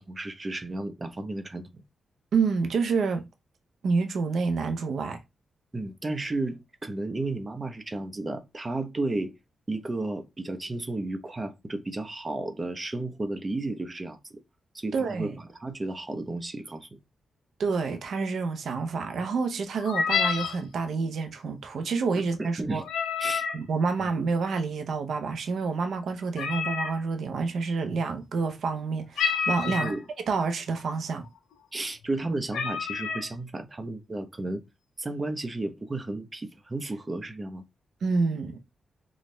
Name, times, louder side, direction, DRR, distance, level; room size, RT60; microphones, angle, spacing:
voice 1, 0.0-1.7 5.7-9.3 9.7-14.4 14.7-17.0 22.4-22.8 23.2-23.4 24.0-24.1 29.7-30.0 31.7-34.6 35.0-37.6, right 2 dB, 30° right, 0.8 m, -33 dB
voice 2, 2.3-3.2 3.8-5.2 14.9-15.3 17.6-22.8 23.5-29.9 30.3-31.3 38.0-38.6, right 4 dB, 75° right, 0.7 m, -28 dB
sound 1, 19.8-20.6 22.8-23.6 26.4-27.0 29.2-30.0 30.8-30.9 31.2-31.5 32.1-32.2 32.5-33.3, left 6 dB, 90° left, 0.6 m, -28 dB
4.3 x 2.4 x 3.2 m
cardioid pair, 70°, 0 cm